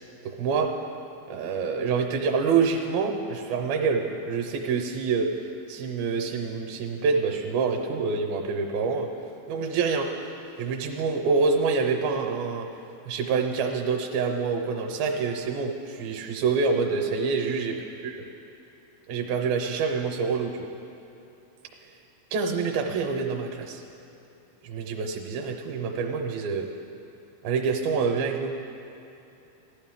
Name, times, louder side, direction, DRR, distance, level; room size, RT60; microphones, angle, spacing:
voice 1, 0.2-0.7 1.3-5.3 5.7-9.1 9.5-10.1 10.6-12.7 13.1-17.8 18.0-18.1 19.1-20.7 22.3-23.8 24.6-26.7 27.4-28.5, right 5 dB, 80° right, 2 dB, 2.6 m, -26 dB
16.0 x 12.0 x 3.6 m, 2.8 s
omnidirectional pair, 4.3 m